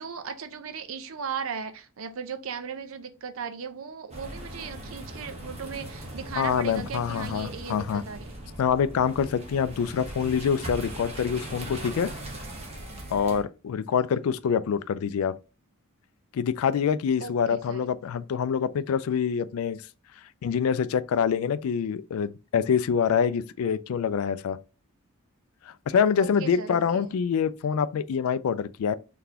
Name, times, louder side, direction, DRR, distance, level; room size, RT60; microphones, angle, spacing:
voice 1, 0.0-8.3 17.2-17.8 26.2-26.8, right 6 dB, 70° right, 0.5 m, -37 dB
sound 1, 4.1-13.4, right 1 dB, 30° right, 1.0 m, -39 dB
voice 2, 6.4-8.0 8.6-12.1 13.1-15.3 16.3-19.8 20.4-24.6 25.7-28.9, left 7 dB, 75° left, 0.3 m, -26 dB
4.0 x 3.3 x 2.8 m
head